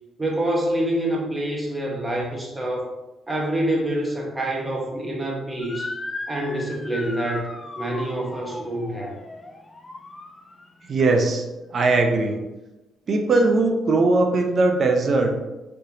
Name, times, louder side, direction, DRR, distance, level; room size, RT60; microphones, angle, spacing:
voice 1, 0.2-2.9 3.3-6.0 6.3-7.5 7.8-9.1, right 1 dB, 20° right, -1 dB, 1.1 m, -26 dB
Motor vehicle (road) / Siren, 5.6-10.9, left 2 dB, 25° left, 0.5 m, -37 dB
voice 2, 10.8-11.4 11.7-12.4 13.1-15.3, right 3 dB, 50° right, 3 dB, 0.7 m, -20 dB
4.3 x 3.2 x 2.8 m, 1.0 s
cardioid pair, 90°, 0 cm